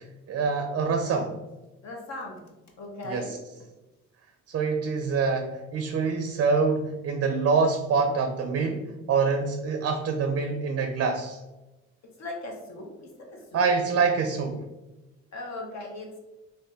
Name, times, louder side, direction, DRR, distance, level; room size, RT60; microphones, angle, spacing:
voice 1, 0.3-1.3 3.0-3.4 4.5-11.4 13.5-14.6, right 4 dB, 50° right, 5 dB, 0.4 m, -25 dB
voice 2, 1.8-2.5 2.8-3.4 12.2-13.7 15.3-16.2, left 2 dB, 65° left, 1 dB, 0.9 m, -38 dB
2.9 x 2.8 x 3.4 m, 1.1 s
cardioid pair, 90°, 30 cm